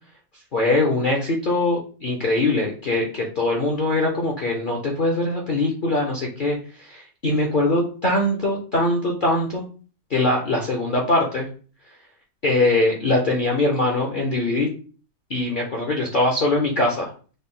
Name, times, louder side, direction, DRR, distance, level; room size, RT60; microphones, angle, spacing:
voice 1, 0.5-9.6 10.1-11.5 12.4-14.7 15.3-17.1, left 2 dB, 55° left, -1 dB, 0.5 m, -22 dB
3.8 x 2.1 x 3.6 m, 0.40 s
omnidirectional pair, 1.6 m